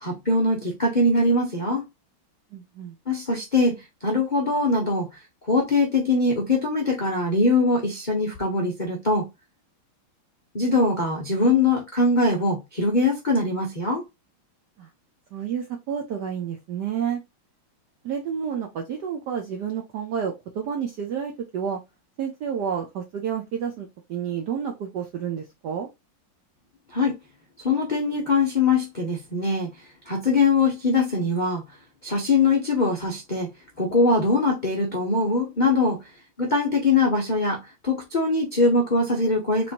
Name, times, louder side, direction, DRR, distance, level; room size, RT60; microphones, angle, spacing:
voice 1, 0.0-1.8 3.1-5.1 5.5-9.3 10.5-14.0 26.9-27.2 27.6-29.7 30.1-31.6 32.0-33.5 33.8-36.0 36.4-39.7, left 3 dB, 70° left, 0.4 m, -22 dB
voice 2, 2.5-2.9 14.8-14.9 15.3-17.2 18.0-21.8 22.2-25.9, right 7 dB, 70° right, 1.0 m, -30 dB
4.2 x 3.1 x 2.8 m
omnidirectional pair, 2.4 m